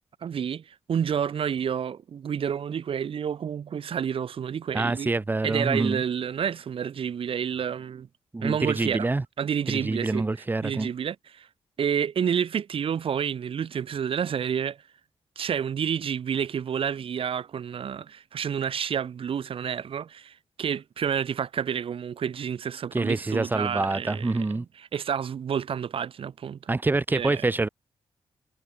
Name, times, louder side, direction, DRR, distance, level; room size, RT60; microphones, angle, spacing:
voice 1, 0.2-5.1 5.4-8.1 8.4-9.1 9.4-10.3 10.6-11.5 11.8-14.8 15.3-24.6 24.9-26.7 27.1-27.5, right 8 dB, 60° right, 3.2 m, -29 dB
voice 2, 4.7-6.0 8.3-9.2 9.7-10.9 22.9-24.6 26.7-27.7, right 3 dB, 20° right, 1.3 m, -26 dB
wide cardioid pair, 155°, 11 cm